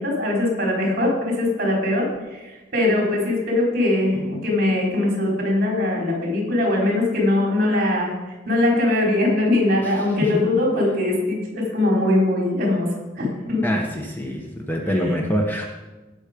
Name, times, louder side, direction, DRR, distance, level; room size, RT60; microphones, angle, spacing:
voice 1, 0.0-8.1 8.5-13.7 14.8-15.2, left 2 dB, 50° right, -2 dB, 4.2 m, -21 dB
voice 2, 13.6-15.7, equal, 10° left, 1 dB, 1.1 m, -25 dB
17.5 x 6.3 x 5.1 m, 1.2 s
head